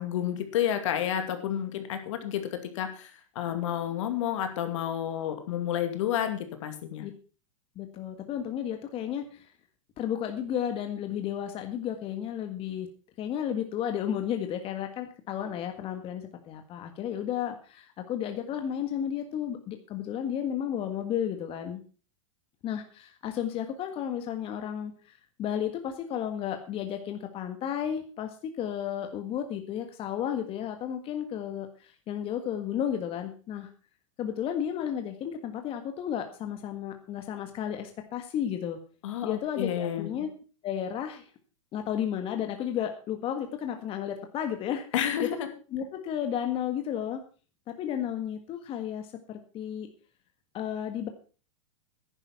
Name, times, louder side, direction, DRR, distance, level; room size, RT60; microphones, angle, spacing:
voice 1, 0.0-7.0 39.0-40.1 44.9-45.5, left 10 dB, 65° left, 7 dB, 2.4 m, -30 dB
voice 2, 7.7-9.5 10.0-12.9 13.2-21.8 22.6-33.7 34.2-38.8 39.2-40.3 40.6-41.3 41.7-44.8 45.2-45.3 45.7-47.2 47.8-49.9 50.5-51.1, left 9 dB, 35° left, 6 dB, 1.6 m, -33 dB
11.0 x 10.0 x 5.9 m, 0.38 s
hypercardioid pair, 115°, 17 cm